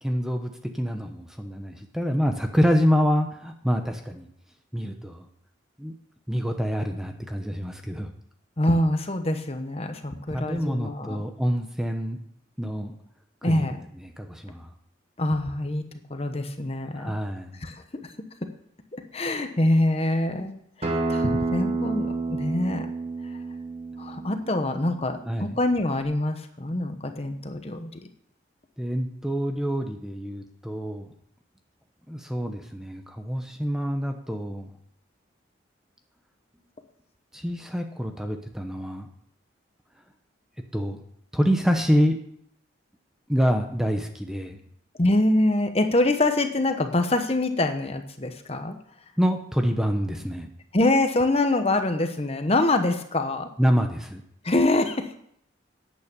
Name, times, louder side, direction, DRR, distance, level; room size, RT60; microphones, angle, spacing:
voice 1, 0.0-4.3 4.7-5.3 5.8-5.9 6.3-8.1 10.3-12.2 12.6-12.9 13.4-13.7 14.0-14.7 17.0-17.6 25.3-25.6 28.8-31.1 32.1-34.7 37.3-39.1 40.7-41.0 41.3-42.2 43.3-44.6 49.2-50.5 53.6-54.2, equal, 5° right, 5 dB, 0.8 m, -26 dB
voice 2, 8.6-11.2 13.4-13.9 15.2-15.8 16.1-17.1 17.6-18.1 18.9-20.5 20.8-22.9 23.2-23.3 24.0-27.9 45.0-48.8 50.7-53.5 54.4-55.1, left 1 dB, 30° left, 7 dB, 1.0 m, -25 dB
Acoustic guitar, 20.8-26.0, right 3 dB, 30° right, 1.8 m, -30 dB
10.5 x 8.6 x 6.9 m, 0.70 s
head